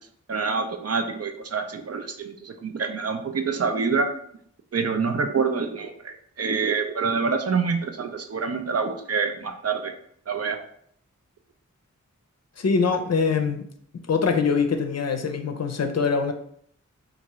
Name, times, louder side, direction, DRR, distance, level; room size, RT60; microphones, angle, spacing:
voice 1, 0.3-4.1 4.7-9.9 10.3-10.6, right 5 dB, 50° right, 6 dB, 0.5 m, -26 dB
voice 2, 12.6-13.7 14.1-16.3, left 5 dB, 55° left, 6 dB, 0.5 m, -23 dB
3.5 x 2.4 x 3.0 m, 0.66 s
cardioid pair, 45°, 31 cm